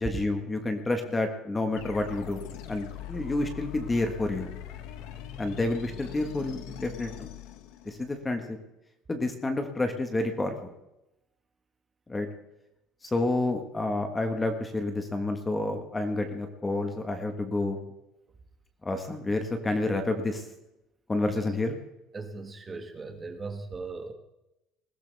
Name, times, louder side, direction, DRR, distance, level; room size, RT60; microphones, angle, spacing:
voice 1, 0.0-4.5 5.4-7.3 7.8-8.6 9.1-10.7 12.1-12.3 13.0-17.8 18.8-20.5 21.1-21.8, left 2 dB, 10° left, 6 dB, 1.4 m, -29 dB
sound 1, 1.8-8.2, left 11 dB, 65° left, 1.8 m, -42 dB
voice 2, 22.1-24.1, right 3 dB, 15° right, 6 dB, 1.7 m, -38 dB
20.5 x 16.5 x 3.5 m, 0.90 s
cardioid pair, 170°, 0 cm